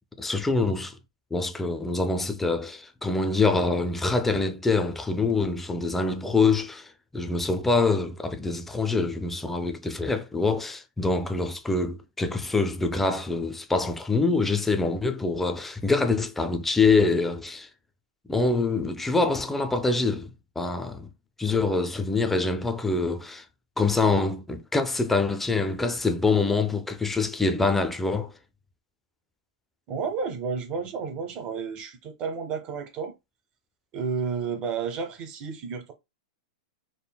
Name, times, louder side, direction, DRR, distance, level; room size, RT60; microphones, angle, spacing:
voice 1, 0.2-0.9 1.3-6.9 7.1-17.7 18.3-21.1 21.4-23.4 23.8-28.3, left 3 dB, 5° left, 0.3 m, -25 dB
voice 2, 29.9-33.1 33.9-35.9, right 5 dB, 30° right, 0.7 m, -31 dB
3.6 x 2.0 x 2.2 m
hypercardioid pair, 145°, 3 cm